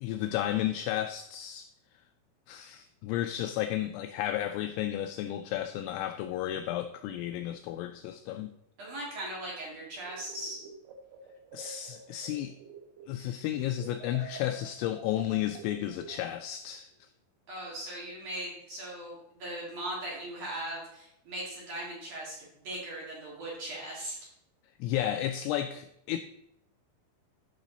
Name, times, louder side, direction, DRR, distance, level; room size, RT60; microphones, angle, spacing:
voice 1, 0.0-1.7 2.5-8.5 11.5-12.5 13.1-16.9 24.8-26.2, left 12 dB, 85° left, 9 dB, 2.7 m, -33 dB
voice 2, 8.8-10.6 17.5-22.4 22.6-24.2, right 1 dB, 45° right, -5 dB, 3.1 m, -39 dB
sound 1, 10.0-13.2 13.5-16.6, right 5 dB, 75° right, 3.1 m, -48 dB
13.0 x 5.7 x 4.0 m, 0.80 s
omnidirectional pair, 5.9 m